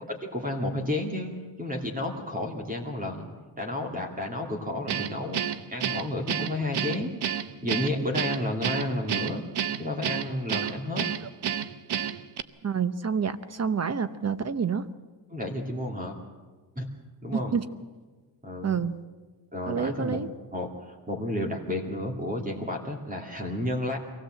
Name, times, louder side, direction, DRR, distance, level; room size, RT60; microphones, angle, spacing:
voice 1, 0.1-1.3 1.6-3.3 3.6-7.2 7.6-9.4 9.8-11.1 15.3-16.2 16.8-16.9 17.2-17.5 18.4-18.8 19.5-20.2 20.5-24.0, left 1 dB, 20° right, 1 dB, 2.6 m, -31 dB
Guitar, 4.9-12.4, right 9 dB, 60° right, 0.9 m, -30 dB
voice 2, 12.6-14.9 17.3-17.6 18.6-19.0 19.7-20.3, right 6 dB, 35° right, 13 dB, 0.9 m, -28 dB
23.5 x 16.5 x 7.7 m, 1.3 s
wide cardioid pair, 130°, 44 cm